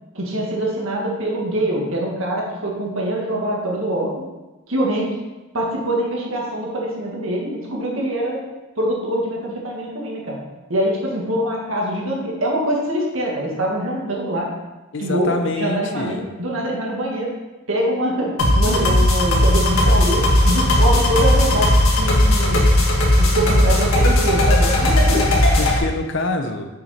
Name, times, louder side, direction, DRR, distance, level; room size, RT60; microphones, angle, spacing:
voice 1, 0.1-4.1 4.7-5.2 5.5-8.4 8.7-10.4 10.7-14.5 15.0-17.3 17.7-22.6 23.2-25.4, right 1 dB, 75° right, -2 dB, 1.7 m, -24 dB
voice 2, 14.9-16.2 25.6-26.7, left 2 dB, 60° left, 6 dB, 0.7 m, -25 dB
sound 1, 18.4-25.8, left 1 dB, 85° left, 1.6 m, -16 dB
6.1 x 6.0 x 4.2 m, 1.1 s
head